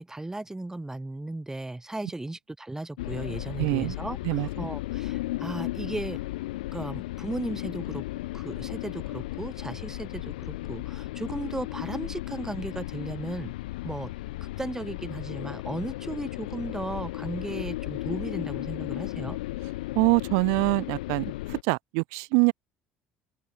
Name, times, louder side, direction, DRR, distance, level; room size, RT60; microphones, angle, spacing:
voice 1, 0.0-6.2 6.7-8.0 8.3-13.5 13.8-14.1 14.6-19.4, right 2 dB, 10° right, 3.9 m, -36 dB
sound 1, 3.0-21.6, left 18 dB, 65° left, 0.6 m, -35 dB
voice 2, 3.6-4.0 4.3-4.5 20.0-21.3 21.7-22.5, right 40 dB or more, 60° right, 0.5 m, -24 dB
open air
figure-of-eight pair, 60°, 5 cm